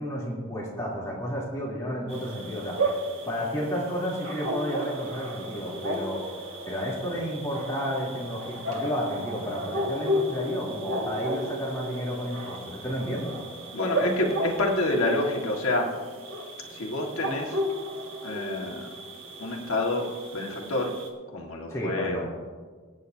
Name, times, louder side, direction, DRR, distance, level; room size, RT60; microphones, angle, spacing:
voice 1, 0.0-2.8 3.2-6.2 6.6-13.3 21.7-22.3, equal, 15° left, -6 dB, 3.2 m, -31 dB
sound 1, 2.1-21.1, right 1 dB, 65° right, 2.0 m, -34 dB
voice 2, 13.7-16.0 16.7-17.6 18.2-18.9 19.4-21.0 21.3-22.2, left 2 dB, 80° left, 1 dB, 1.8 m, -28 dB
23.0 x 9.5 x 2.8 m, 1.5 s
head